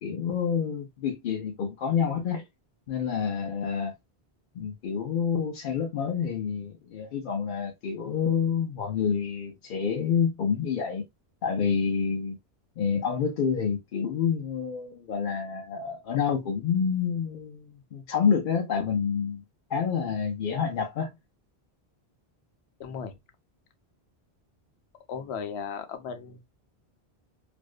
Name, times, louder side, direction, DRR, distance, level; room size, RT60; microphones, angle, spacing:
voice 1, 0.0-2.4 2.9-3.9 4.5-11.0 11.4-12.4 12.8-19.4 19.7-21.1, left 6 dB, 60° left, 0.6 m, -28 dB
voice 2, 22.8-23.1 25.1-26.6, left 6 dB, 90° left, 0.9 m, -36 dB
2.5 x 2.1 x 2.3 m
omnidirectional pair, 1.1 m